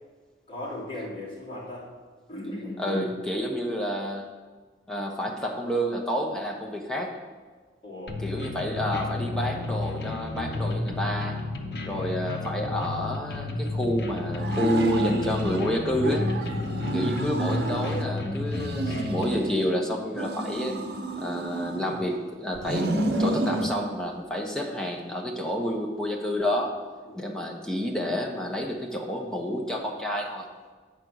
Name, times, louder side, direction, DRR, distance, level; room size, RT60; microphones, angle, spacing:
voice 1, 0.5-1.9 2.3-3.1 7.8-8.2 12.0-12.1 16.5-17.0 27.0-27.3, left 1 dB, 30° left, -8 dB, 2.9 m, -37 dB
voice 2, 2.8-4.3 4.9-7.2 8.2-11.4 11.8-16.3 16.9-20.8 21.2-22.9 23.2-26.7 27.2-30.5, equal, 5° left, -1 dB, 1.0 m, -29 dB
sound 1, 8.1-19.2, left 2 dB, 65° left, 0.9 m, -31 dB
sound 2, 14.4-15.6 16.0-18.1 18.5-19.7 20.1-22.1 22.6-23.7, right 1 dB, 70° right, 0.8 m, -30 dB
8.3 x 5.3 x 6.3 m, 1.4 s
head